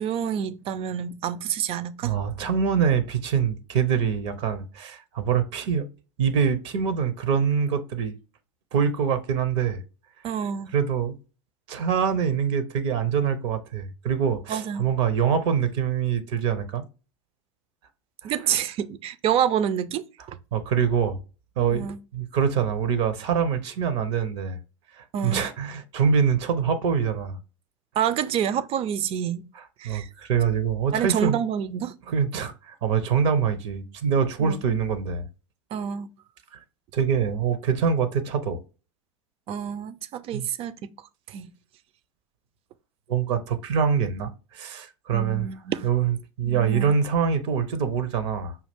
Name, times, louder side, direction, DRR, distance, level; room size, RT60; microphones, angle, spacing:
voice 1, 0.0-2.2 10.2-10.7 14.5-14.8 18.2-20.4 21.7-22.0 25.1-25.4 28.0-29.5 29.8-30.1 30.9-31.9 34.4-34.6 35.7-36.1 39.5-40.8 41.3-41.5 45.1-45.9 46.4-46.9, right 9 dB, 35° right, 0.4 m, -28 dB
voice 2, 2.0-5.9 6.2-8.1 8.7-9.8 10.7-11.2 11.7-16.8 18.2-18.3 20.5-21.2 21.6-24.6 25.0-27.4 29.8-31.4 32.1-35.2 36.5-36.6 36.9-38.6 40.3-40.5 43.1-45.5 45.8-48.6, right 7 dB, 60° right, 0.8 m, -24 dB
5.5 x 2.4 x 3.4 m
hypercardioid pair, 85°, 16 cm